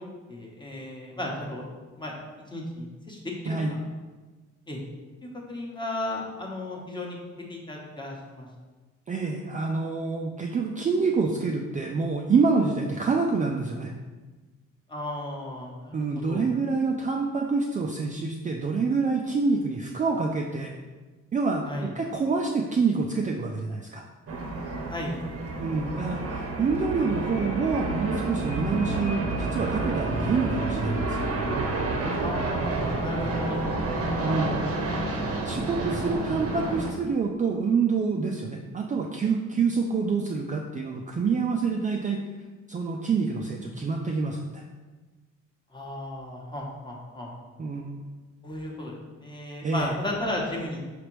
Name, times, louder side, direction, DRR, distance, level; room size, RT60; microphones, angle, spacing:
voice 1, 0.0-1.6 2.0-2.1 2.5-3.2 3.4-3.8 4.7-4.8 5.5-7.2 7.5-8.5 14.9-16.4 21.6-21.9 24.8-25.2 32.2-34.1 35.8-36.2 45.7-47.3 48.4-50.8, left 1 dB, 15° left, -2 dB, 1.0 m, -35 dB
voice 2, 3.4-3.8 9.1-13.9 15.9-20.7 21.3-24.0 25.6-31.2 34.2-34.6 35.4-42.2 42.7-44.6 47.6-48.1 49.6-49.9, right 4 dB, 25° right, 0 dB, 0.4 m, -27 dB
sound 1, 24.3-36.9, right 2 dB, 50° right, 0.7 m, -29 dB
5.0 x 3.3 x 3.0 m, 1.3 s
cardioid pair, 90°, 30 cm